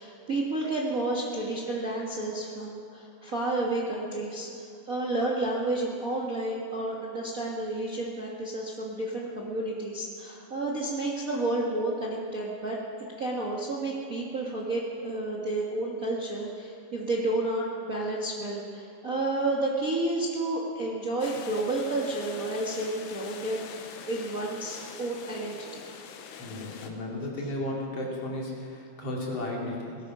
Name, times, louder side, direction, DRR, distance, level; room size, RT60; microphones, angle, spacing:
voice 1, 0.0-12.8 13.2-25.8, right 2 dB, 80° right, -3 dB, 0.7 m, -31 dB
sound 1, 21.2-26.9, left 6 dB, 75° left, 2.6 m, -44 dB
voice 2, 26.4-30.0, left 1 dB, 45° left, -3 dB, 3.2 m, -34 dB
19.5 x 13.5 x 5.5 m, 2.3 s
omnidirectional pair, 4.3 m